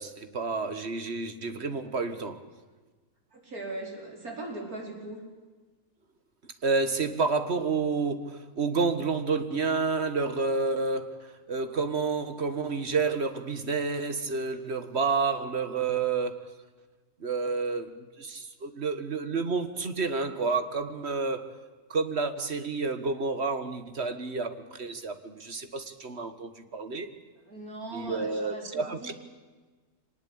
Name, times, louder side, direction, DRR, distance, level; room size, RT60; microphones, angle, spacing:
voice 1, 0.0-2.4 6.6-11.1 11.5-16.4 17.2-21.5 21.9-27.1 27.9-29.1, right 4 dB, 45° right, 10 dB, 1.9 m, -29 dB
voice 2, 3.3-5.2 27.4-29.1, right 2 dB, 80° right, 1 dB, 5.5 m, -39 dB
24.5 x 19.5 x 8.8 m, 1.3 s
omnidirectional pair, 1.5 m